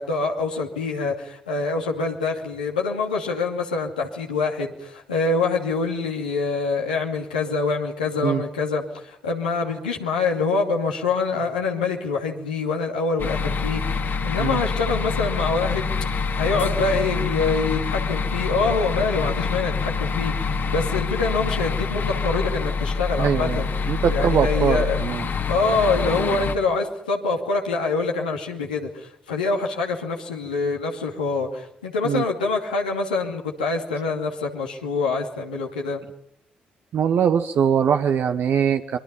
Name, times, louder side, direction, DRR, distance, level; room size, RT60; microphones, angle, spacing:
voice 1, 0.0-25.0 25.5-36.0, left 4 dB, 90° left, -1 dB, 2.5 m, -25 dB
sound 1, 13.2-26.6, left 4 dB, 50° left, 2.5 m, -26 dB
voice 2, 23.2-25.3 32.0-32.2 36.9-39.0, right 8 dB, 60° right, 6 dB, 1.2 m, -22 dB
24.5 x 23.0 x 5.6 m, 0.71 s
hypercardioid pair, 45°, 4 cm